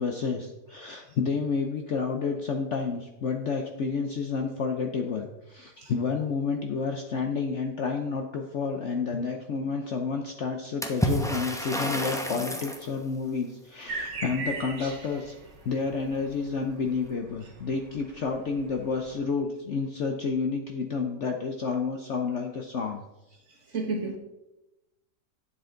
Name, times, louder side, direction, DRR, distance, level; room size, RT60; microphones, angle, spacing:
voice 1, 0.0-15.3 15.6-23.0, left 5 dB, 60° left, 3 dB, 0.8 m, -30 dB
Water / Splash splatter, 10.8-12.9, equal, 5° left, 0.4 m, -29 dB
sound 1, 13.9-19.2, right 3 dB, 80° right, 2.1 m, -40 dB
voice 2, 23.7-24.2, right 3 dB, 45° right, 1 dB, 1.5 m, -31 dB
9.3 x 7.8 x 3.8 m, 0.95 s
omnidirectional pair, 1.8 m